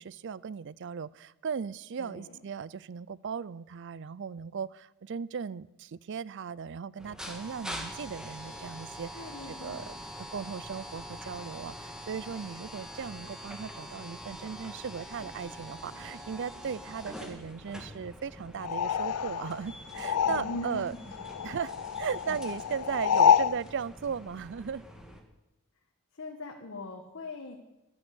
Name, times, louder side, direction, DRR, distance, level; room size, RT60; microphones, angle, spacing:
voice 1, 0.0-20.9 21.4-24.9, right 6 dB, 55° right, 21 dB, 0.4 m, -37 dB
voice 2, 2.0-2.4 9.1-9.9 20.2-21.0 22.3-22.4 26.1-27.6, left 2 dB, 60° left, 1 dB, 1.3 m, -41 dB
sound 1, 7.0-25.2, equal, 5° right, 1.6 m, -44 dB
sound 2, 18.6-20.9 21.1-23.6, left 8 dB, 90° left, 0.4 m, -27 dB
11.5 x 11.0 x 8.4 m, 0.96 s
head